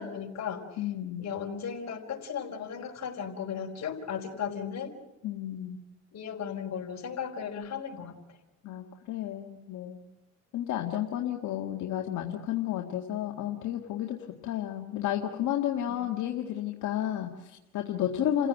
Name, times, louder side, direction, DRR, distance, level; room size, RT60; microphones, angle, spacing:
voice 1, 0.0-0.6 1.2-4.9 6.1-8.1, left 7 dB, 60° left, 2 dB, 4.8 m, -36 dB
voice 2, 0.8-1.3 5.2-5.8 8.6-10.0 10.5-18.5, left 11 dB, 80° left, 2 dB, 1.9 m, -32 dB
30.0 x 16.0 x 9.1 m, 0.99 s
cardioid pair, 90°, 30 cm